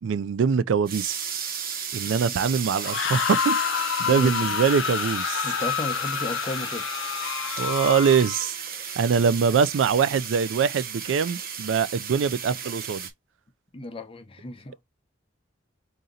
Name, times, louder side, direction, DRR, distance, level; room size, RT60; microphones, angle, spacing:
voice 1, 0.0-1.2 1.9-5.5 7.6-8.6 9.0-13.0, right 6 dB, 85° right, 0.4 m, -23 dB
sound 1, 0.9-13.1, right 7 dB, 50° right, 0.8 m, -35 dB
sound 2, 2.7-8.5, left 8 dB, 80° left, 0.4 m, -28 dB
voice 2, 4.0-4.5 5.4-6.9 13.7-14.8, left 1 dB, 30° left, 0.7 m, -34 dB
3.9 x 2.8 x 3.8 m
head